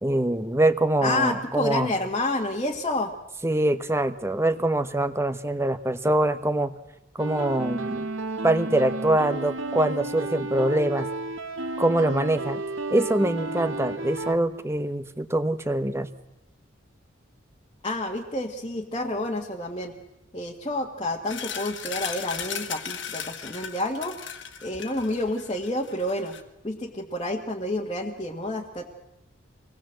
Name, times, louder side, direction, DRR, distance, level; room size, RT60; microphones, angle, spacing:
voice 1, 0.0-1.9 3.4-6.7 7.2-8.1 8.4-11.1 11.8-12.6 12.9-16.1, right 1 dB, 15° right, 11 dB, 1.0 m, -24 dB
voice 2, 1.0-3.1 17.8-20.0 20.3-24.1 24.6-26.4 26.6-28.9, left 1 dB, 25° left, -3 dB, 1.7 m, -29 dB
sound 1, 7.2-14.3, right 2 dB, 80° right, 1.5 m, -32 dB
sound 2, 21.3-26.4, left 8 dB, 65° left, 1.9 m, -36 dB
25.0 x 19.0 x 7.7 m, 0.90 s
head